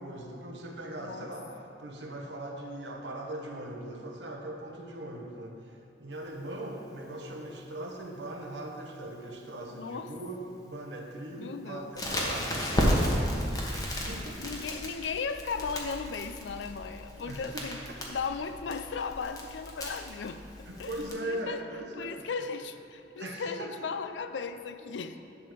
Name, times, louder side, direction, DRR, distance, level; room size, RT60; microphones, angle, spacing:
voice 1, 0.0-1.5 1.8-13.3 13.7-14.5 17.2-17.7 20.7-22.3 23.2-24.0, right 1 dB, 75° right, 1 dB, 1.1 m, -40 dB
voice 2, 9.7-10.1 11.4-12.3 12.6-12.8 14.4-17.8 18.1-20.4 20.8-20.9 21.2-21.7 22.0-25.2, left 5 dB, 85° left, 10 dB, 0.5 m, -36 dB
Crackle, 12.0-21.1, equal, 20° left, 1.2 m, -33 dB
11.0 x 3.7 x 6.8 m, 2.6 s
head